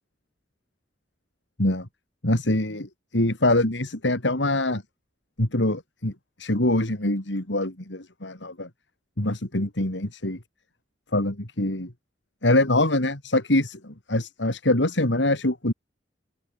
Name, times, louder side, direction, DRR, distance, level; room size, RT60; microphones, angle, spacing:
voice 1, 2.2-2.9 3.1-4.8 5.4-6.1 6.4-8.7 9.2-10.4 11.1-11.9 12.4-15.7, left 1 dB, 85° left, 3.7 m, -24 dB
open air
head